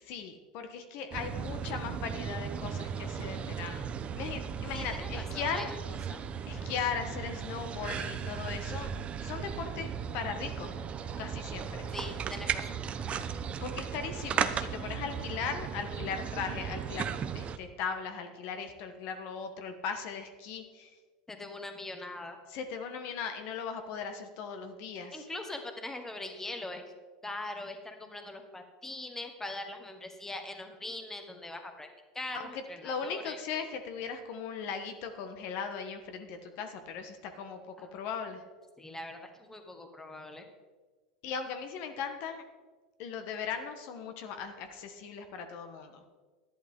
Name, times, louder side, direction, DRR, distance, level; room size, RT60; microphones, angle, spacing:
voice 1, 0.0-3.9 4.2-5.7 6.5-8.9 9.2-10.7 11.2-11.9 13.6-20.9 22.5-25.2 32.3-38.4 41.2-42.4 43.0-46.0, left 6 dB, 60° left, 7 dB, 1.3 m, -38 dB
sound 1, 1.1-17.6, right 7 dB, 30° right, 0.7 m, -36 dB
voice 2, 4.7-5.8 6.1-6.2 11.9-12.8 21.3-22.4 25.1-26.8 27.2-31.9 32.1-33.4 37.8-38.0 38.8-40.5, left 2 dB, 10° left, 5 dB, 1.4 m, -42 dB
11.5 x 11.0 x 3.7 m, 1.3 s
hypercardioid pair, 105°, 4 cm